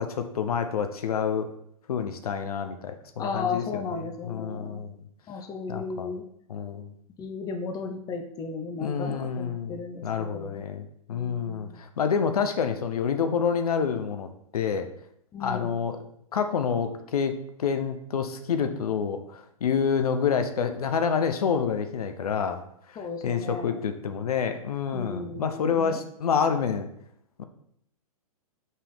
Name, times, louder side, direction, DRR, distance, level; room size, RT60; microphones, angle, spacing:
voice 1, 0.0-1.5 1.9-3.9 4.3-4.9 5.7-6.1 6.5-6.9 8.8-14.3 14.5-14.9 15.4-16.0 16.3-22.6 23.2-26.9 27.4-27.5, left 6 dB, 80° left, 8 dB, 0.8 m, -28 dB
voice 2, 3.2-4.8 5.3-6.2 7.2-10.6 11.1-11.8 15.3-15.8 23.0-23.8 24.9-26.0, left 4 dB, 20° left, 4 dB, 0.7 m, -35 dB
5.5 x 3.4 x 5.6 m, 0.71 s
hypercardioid pair, 130°, 19 cm